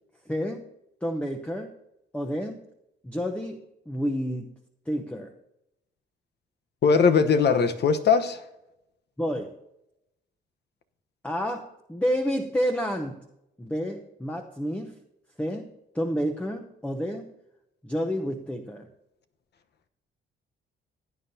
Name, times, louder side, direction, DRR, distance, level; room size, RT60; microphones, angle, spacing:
voice 1, 0.3-0.7 1.0-1.7 2.1-2.6 3.0-4.5 4.9-5.3 9.2-9.5 11.2-13.3 13.6-15.0 15.4-17.3 17.8-18.9, equal, 5° left, 0.9 m, -30 dB
voice 2, 6.8-8.4, left 5 dB, 60° left, 1.1 m, -20 dB
16.5 x 9.3 x 2.8 m
cardioid pair, 90°, 20 cm